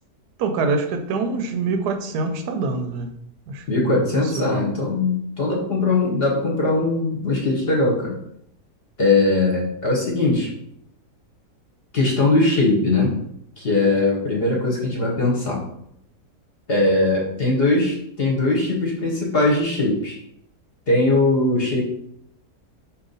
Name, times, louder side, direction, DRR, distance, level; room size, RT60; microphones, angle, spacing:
voice 1, 0.4-3.1 3.5-4.0 4.3-4.7, right 4 dB, 85° right, 6 dB, 1.2 m, -25 dB
voice 2, 3.7-8.2 9.0-10.5 11.9-13.2 13.6-15.7 16.7-20.2 20.9-21.8, left 2 dB, 50° left, -1 dB, 0.8 m, -20 dB
4.1 x 2.9 x 3.9 m, 0.73 s
omnidirectional pair, 1.7 m